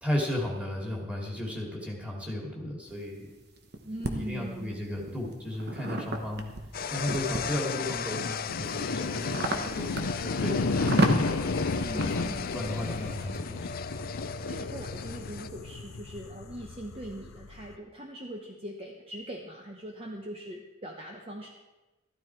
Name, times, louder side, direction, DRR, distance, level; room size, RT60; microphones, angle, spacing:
voice 1, 0.0-3.4 4.1-6.5 6.9-11.3 11.9-13.7 14.0-14.1, left 1 dB, 5° right, -2 dB, 2.6 m, -35 dB
sound 1, 2.9-4.1 4.8-7.7 8.2-13.3, right 1 dB, 50° right, 1.3 m, -32 dB
voice 2, 3.8-4.8 11.8-12.5 14.1-14.2 14.5-21.5, right 1 dB, 30° right, 1 dB, 1.0 m, -41 dB
sound 2, 6.7-15.5, left 6 dB, 45° left, 0.5 m, -37 dB
sound 3, 7.4-17.8, left 3 dB, 80° left, 0.7 m, -33 dB
14.0 x 13.0 x 4.6 m, 1.1 s
head